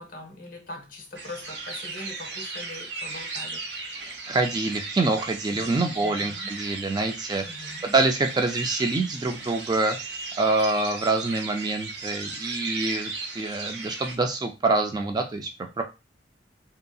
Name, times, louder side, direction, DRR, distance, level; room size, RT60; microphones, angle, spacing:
voice 1, 0.0-3.6 5.5-6.5 7.4-7.9, left 2 dB, 50° left, 3 dB, 0.8 m, -42 dB
sound 1, 1.1-14.1, right 3 dB, 70° right, 0.6 m, -36 dB
voice 2, 4.0-15.8, right 3 dB, 25° right, 5 dB, 0.3 m, -26 dB
2.8 x 2.6 x 2.3 m, 0.27 s
head